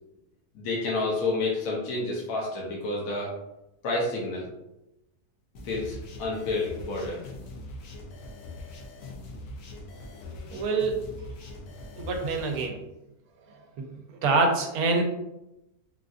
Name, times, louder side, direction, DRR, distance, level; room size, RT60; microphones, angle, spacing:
voice 1, 0.5-3.3 3.8-4.5 5.6-7.2, left 2 dB, 70° left, -3 dB, 1.1 m, -29 dB
sound 1, 5.5-12.6, left 2 dB, 85° left, 1.2 m, -42 dB
voice 2, 10.5-11.1 12.0-12.8 13.8-14.0 14.2-15.0, right 3 dB, 75° right, 3 dB, 1.1 m, -25 dB
3.8 x 2.4 x 2.4 m, 0.90 s
omnidirectional pair, 1.6 m